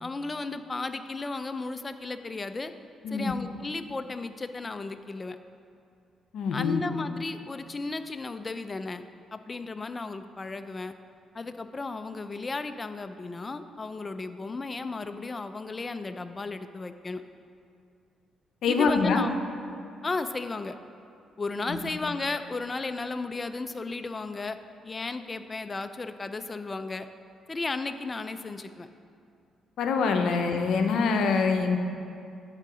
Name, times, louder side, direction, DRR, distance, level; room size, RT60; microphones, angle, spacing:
voice 1, 0.0-2.7 3.1-5.4 6.5-10.9 11.3-17.2 18.7-19.4 20.0-20.8 21.4-24.6 24.8-27.1 27.5-28.9 30.3-30.4, left 3 dB, 25° left, 10 dB, 0.4 m, -34 dB
voice 2, 3.0-3.3 6.3-6.8 18.6-19.2 21.7-21.9 29.8-31.8, left 5 dB, 70° left, 5 dB, 0.6 m, -25 dB
10.5 x 3.8 x 4.9 m, 2.5 s
cardioid pair, 90°, 0 cm